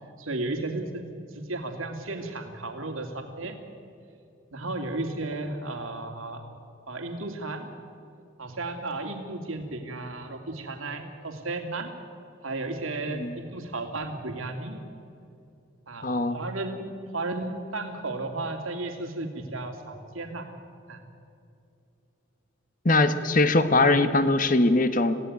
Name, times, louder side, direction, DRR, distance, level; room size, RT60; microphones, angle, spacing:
voice 1, 0.2-1.0 1.3-3.5 4.5-6.5 6.9-7.7 8.4-11.9 12.4-14.8 15.9-20.5 20.9-21.0, right 2 dB, 90° right, 4 dB, 2.7 m, -34 dB
voice 2, 16.0-16.4 22.8-25.2, left 2 dB, 40° left, 10 dB, 1.3 m, -21 dB
26.5 x 17.0 x 9.6 m, 2.6 s
head